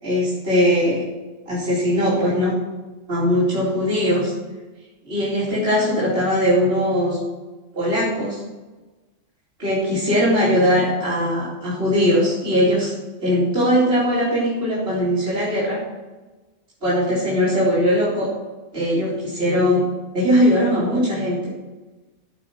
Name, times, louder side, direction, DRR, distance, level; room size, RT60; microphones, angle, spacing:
voice 1, 0.0-1.0 1.5-2.6 3.1-4.3 5.0-7.2 7.7-8.4 9.6-12.9 13.2-15.8 16.8-18.3 18.7-19.8 20.1-21.5, equal, 50° right, -9 dB, 4.6 m, -20 dB
15.0 x 6.9 x 6.3 m, 1.2 s
omnidirectional pair, 1.4 m